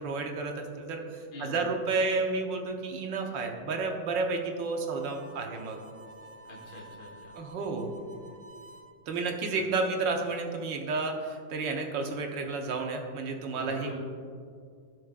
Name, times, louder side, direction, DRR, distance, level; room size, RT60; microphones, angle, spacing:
voice 1, 0.0-5.8 7.4-7.9 9.1-14.0, right 3 dB, 90° right, 3 dB, 1.7 m, -31 dB
voice 2, 1.3-1.6 6.5-7.3 9.5-9.6 13.5-14.0, left 1 dB, 65° left, -5 dB, 2.2 m, -43 dB
Harmonica, 4.9-8.9, right 2 dB, 30° right, 0.7 m, -51 dB
16.5 x 6.3 x 2.4 m, 2.2 s
omnidirectional pair, 1.9 m